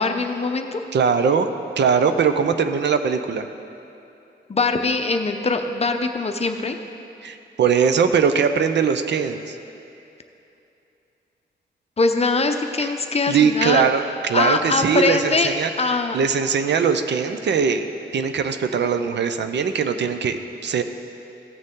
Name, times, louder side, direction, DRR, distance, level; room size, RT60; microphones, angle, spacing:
voice 1, 0.0-0.8 4.5-6.8 12.0-13.9 14.3-16.2, left 3 dB, 35° left, 6 dB, 0.6 m, -22 dB
voice 2, 0.9-1.5 1.8-3.5 7.2-9.6 12.8-12.9 13.3-17.9 18.1-20.8, right 6 dB, 70° right, 8 dB, 0.5 m, -21 dB
15.0 x 6.5 x 3.7 m, 2.8 s
cardioid pair, 90°, 19 cm